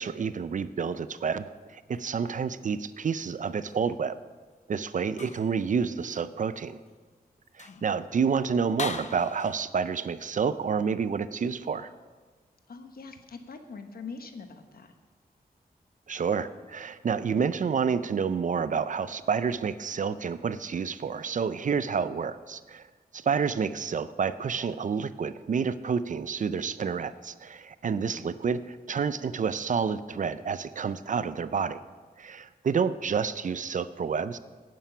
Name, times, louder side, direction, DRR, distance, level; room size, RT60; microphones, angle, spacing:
voice 1, 0.0-4.2 4.7-6.8 7.6-11.9 16.1-22.9 23.1-31.8 32.2-34.4, right 6 dB, 55° right, 14 dB, 0.5 m, -29 dB
sound 1, 3.0-3.9 5.1-5.6 6.1-6.3 6.9-7.0 7.5-7.9 8.8-9.5, left 5 dB, 50° left, 0.6 m, -40 dB
voice 2, 7.6-8.0 12.7-14.9 27.8-28.4, left 4 dB, 70° left, 7 dB, 1.1 m, -44 dB
11.0 x 9.2 x 6.0 m, 1.4 s
wide cardioid pair, 140°, 16 cm